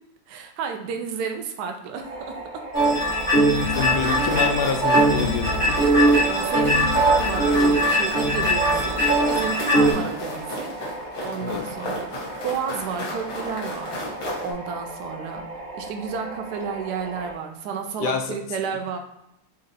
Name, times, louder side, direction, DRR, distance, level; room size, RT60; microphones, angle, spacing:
voice 1, 0.3-2.7 3.5-3.8 6.3-9.0 9.3-10.7 11.2-12.1 12.4-14.0 14.4-19.0, right 6 dB, 80° right, 4 dB, 0.9 m, -32 dB
sound 1, 2.0-17.3, right 2 dB, 35° right, 0.9 m, -37 dB
sound 2, 2.7-9.9, right 1 dB, 40° left, 1.1 m, -20 dB
sound 3, 3.6-14.5, left 1 dB, 60° left, 1.6 m, -35 dB
voice 2, 3.8-5.9 11.4-11.7 18.0-18.3, left 6 dB, 85° left, 5 dB, 1.5 m, -27 dB
4.1 x 2.6 x 3.9 m, 0.86 s
omnidirectional pair, 2.3 m